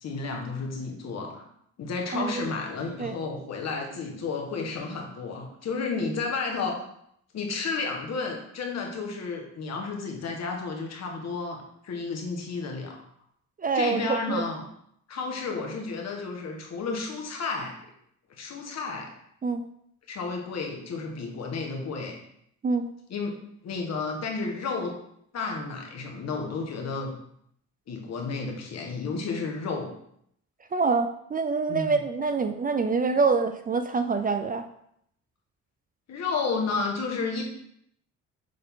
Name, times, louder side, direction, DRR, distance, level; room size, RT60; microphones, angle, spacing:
voice 1, 0.0-1.4 1.8-6.8 7.3-13.0 13.7-14.6 15.1-17.7 18.4-19.1 20.1-22.2 23.1-23.3 23.6-24.9 25.3-27.1 27.9-29.9 31.7-32.0 36.1-37.4, left 4 dB, 60° left, 1 dB, 1.5 m, -32 dB
voice 2, 2.1-2.5 3.0-3.1 13.6-14.4 19.4-19.6 22.6-22.9 30.7-34.6, right 4 dB, 30° right, 8 dB, 0.4 m, -26 dB
6.6 x 3.9 x 3.6 m, 0.71 s
cardioid pair, 90°, 30 cm